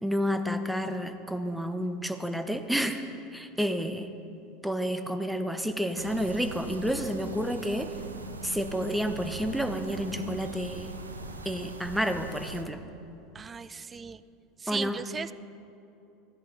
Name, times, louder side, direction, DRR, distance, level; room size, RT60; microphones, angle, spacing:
voice 1, 0.0-3.0 3.3-4.1 4.6-7.9 8.4-10.9 11.4-12.8 14.7-15.0, equal, ahead, 8 dB, 0.8 m, -30 dB
sound 1, 5.9-12.6, right 3 dB, 85° right, 0.6 m, -41 dB
voice 2, 13.3-14.2 14.6-15.3, right 5 dB, 25° right, 16 dB, 0.3 m, -36 dB
14.0 x 10.5 x 3.9 m, 2.8 s
figure-of-eight pair, 75°, 0 cm